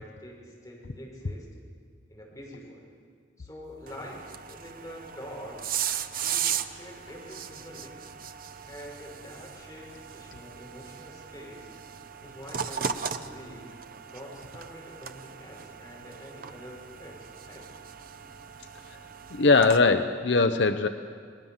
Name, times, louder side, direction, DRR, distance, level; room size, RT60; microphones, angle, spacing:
voice 1, 0.0-1.5 2.1-2.8 3.4-5.7 6.2-8.0 8.7-11.7 12.2-13.7 14.1-17.7, equal, 15° left, -3 dB, 6.3 m, -45 dB
sound 1, 3.9-19.8, right 8 dB, 50° right, 0.9 m, -37 dB
voice 2, 19.3-20.9, left 4 dB, 70° left, 8 dB, 0.8 m, -21 dB
29.5 x 20.0 x 7.4 m, 2.1 s
head